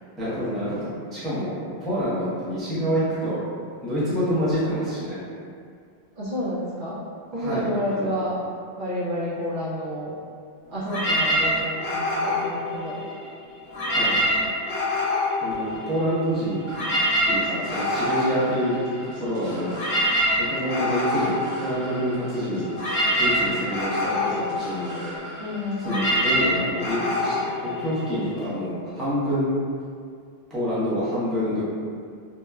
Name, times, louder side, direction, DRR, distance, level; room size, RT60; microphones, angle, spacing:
voice 1, 0.2-1.5 1.8-3.4 3.8-5.2 7.3-8.1 13.9-14.2 15.4-16.6 17.2-19.8 20.4-22.7 23.2-25.2 25.8-29.5 30.5-31.6, equal, ahead, -12 dB, 0.5 m, -27 dB
voice 2, 6.2-7.0 7.3-8.4 8.8-10.1 10.7-13.0 25.4-26.1, equal, 60° right, -10 dB, 0.7 m, -29 dB
sound 1, 10.9-13.3 13.6-16.2 16.5-28.4, left 1 dB, 80° left, 0.9 m, -26 dB
sound 2, 16.7-25.9, right 1 dB, 75° right, 1.0 m, -42 dB
2.9 x 2.1 x 2.3 m, 2.2 s
omnidirectional pair, 1.1 m